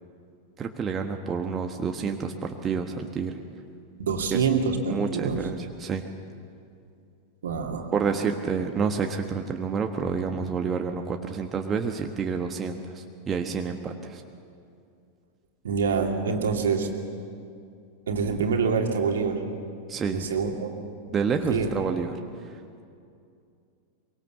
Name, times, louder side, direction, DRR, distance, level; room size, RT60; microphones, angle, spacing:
voice 1, 0.6-3.4 4.3-4.4 4.9-6.1 7.9-14.2 19.9-20.3 21.1-22.2 22.4-22.6, right 5 dB, 25° right, 4 dB, 1.4 m, -29 dB
voice 2, 4.0-5.4 7.4-7.9 15.6-16.9 18.1-19.4 20.1-20.7 21.5-21.7, right 5 dB, 65° right, 3 dB, 2.6 m, -26 dB
24.0 x 23.5 x 7.2 m, 2.4 s
figure-of-eight pair, 90°, 0 cm